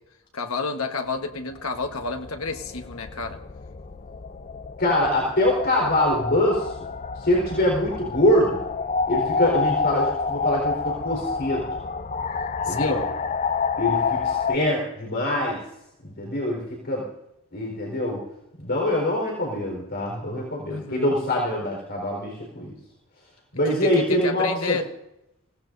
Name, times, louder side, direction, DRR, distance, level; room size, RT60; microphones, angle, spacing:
voice 1, 0.3-3.4 12.7-13.0 20.7-21.1 23.8-24.9, left 4 dB, 75° left, 1.3 m, -30 dB
sound 1, 1.3-14.6, left 5 dB, 35° left, 0.5 m, -28 dB
voice 2, 4.8-6.7 7.2-8.6 9.1-11.6 12.7-13.0 13.8-15.6 16.0-17.1 17.5-18.2 18.6-22.7 23.5-24.8, left 1 dB, 55° left, 4.5 m, -24 dB
24.5 x 17.0 x 2.7 m
head